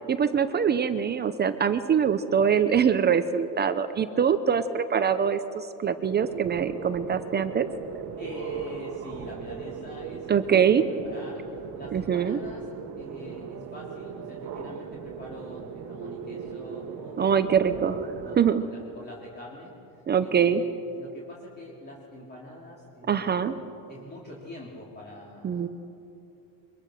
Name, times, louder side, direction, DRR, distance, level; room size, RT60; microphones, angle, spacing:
voice 1, 0.1-7.7 10.3-10.8 11.9-12.4 17.2-18.6 20.1-20.6 23.1-23.5 25.4-25.7, right 7 dB, 25° right, 10 dB, 0.8 m, -24 dB
sound 1, 6.2-18.4, right 6 dB, 50° right, 1.6 m, -38 dB
voice 2, 8.2-10.6 11.0-11.4 11.7-12.6 13.0-17.6 18.2-20.7 21.0-25.7, left 1 dB, 25° left, -4 dB, 3.5 m, -44 dB
23.5 x 23.0 x 6.6 m, 2.8 s
cardioid pair, 135°, 39 cm